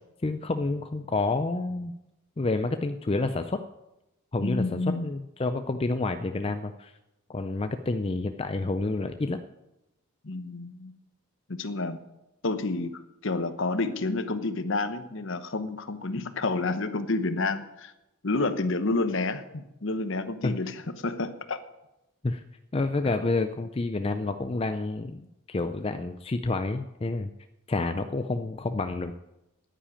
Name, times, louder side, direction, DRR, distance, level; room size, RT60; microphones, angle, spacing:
voice 1, 0.2-1.9 2.4-3.6 4.3-6.9 7.3-9.4 20.4-20.5 22.2-22.4 22.7-27.3 27.7-29.1, left 3 dB, 25° left, 8 dB, 0.4 m, -29 dB
voice 2, 4.4-5.1 10.2-10.9 11.5-12.0 12.4-17.9 18.2-21.6 23.0-23.1, left 3 dB, 60° left, 11 dB, 1.0 m, -29 dB
10.0 x 10.0 x 8.5 m, 0.93 s
head